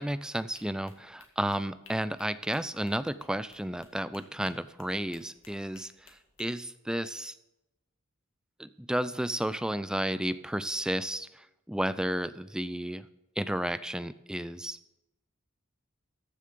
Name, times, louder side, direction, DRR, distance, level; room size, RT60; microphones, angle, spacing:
voice 1, 0.0-7.3 8.6-13.1 13.4-14.8, right 1 dB, 5° right, 15 dB, 0.3 m, -32 dB
sound 1, 0.5-6.5, left 5 dB, 65° left, 2.1 m, -58 dB
14.0 x 6.7 x 6.8 m, 0.94 s
head